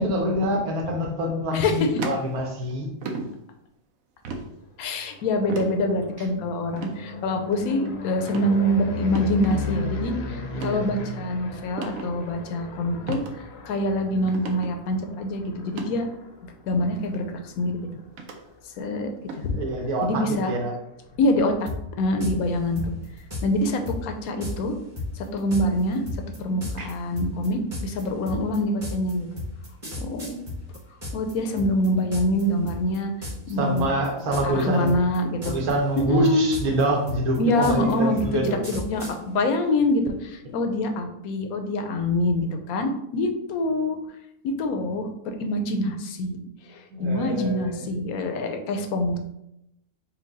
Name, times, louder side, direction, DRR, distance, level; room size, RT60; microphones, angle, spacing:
voice 1, 0.0-2.9 10.3-10.9 19.5-20.7 26.8-26.9 33.6-34.9 35.4-38.6 46.9-47.9, right 1 dB, 90° right, 2 dB, 1.3 m, -26 dB
voice 2, 1.5-1.9 4.8-13.2 13.7-16.1 16.7-17.9 18.8-19.6 20.0-20.5 21.2-21.7 22.0-22.9 23.4-24.8 25.2-26.0 26.4-29.3 30.0-30.5 31.1-33.1 33.5-33.9 34.4-35.6 36.1-36.5 37.4-44.0 44.4-49.2, left 1 dB, 85° left, 5 dB, 1.1 m, -25 dB
sound 1, 2.0-2.7 3.0-3.3 4.3-4.5 5.5-5.7 6.7-7.0 7.5-7.9 8.3-8.5 9.2-9.6 10.5-10.8 11.8-12.1 13.1-13.3 13.7-13.8 14.3-14.7 15.6-15.9 17.0-17.1 18.2-18.4 19.3-19.5, right 3 dB, 75° right, 1.0 m, -33 dB
sound 2, 4.9-18.9 19.3-19.8 20.0-20.1 20.4-23.5, left 3 dB, 60° left, 0.7 m, -37 dB
sound 3, 21.7-21.8 22.2-22.3 22.8-23.4 23.9-24.0 24.4-24.5 25.0-31.3 31.6-32.4 32.7-33.0 33.2-33.5 33.8-34.6 34.9-35.7 36.0-39.1, left 2 dB, 25° right, 1.1 m, -33 dB
4.4 x 2.2 x 3.9 m, 0.82 s
omnidirectional pair, 1.5 m